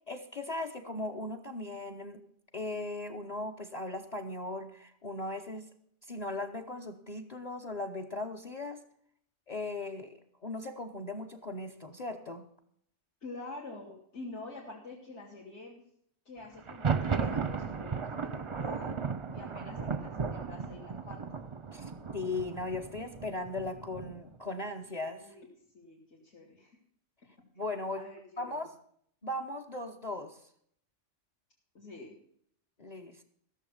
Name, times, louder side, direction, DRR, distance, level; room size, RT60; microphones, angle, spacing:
voice 1, 0.1-2.2 2.5-5.7 6.0-8.8 9.5-12.4 21.7-25.3 27.6-28.0 28.4-28.7 29.2-30.4 32.8-33.2, left 2 dB, 35° left, 8 dB, 1.0 m, -38 dB
voice 2, 13.2-15.8 16.3-18.9 19.3-21.2 25.2-26.8 28.0-28.6 31.7-32.2, left 2 dB, 70° left, -4 dB, 2.6 m, -47 dB
Thunder, 16.6-24.3, right 5 dB, 35° right, 0.5 m, -35 dB
15.0 x 7.0 x 7.1 m, 0.66 s
omnidirectional pair, 1.2 m